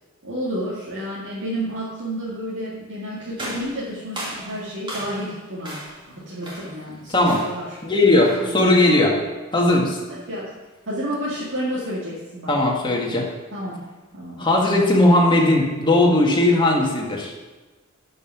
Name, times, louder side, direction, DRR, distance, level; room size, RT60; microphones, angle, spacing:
voice 1, 0.2-5.8 6.1-7.6 8.2-8.7 10.1-10.5 10.9-12.5 13.5-13.7 14.1-14.5, equal, 60° right, -8 dB, 2.2 m, -30 dB
sound 1, 3.4-5.3 5.6-6.1 6.4-6.8 7.2-7.7 8.2-8.6, right 1 dB, 25° right, 2.2 m, -35 dB
voice 2, 7.1-7.4 7.8-9.2 9.5-10.0 12.5-13.3 14.4-17.3, left 1 dB, 20° left, -1 dB, 1.7 m, -18 dB
12.0 x 5.5 x 5.9 m, 1.2 s
head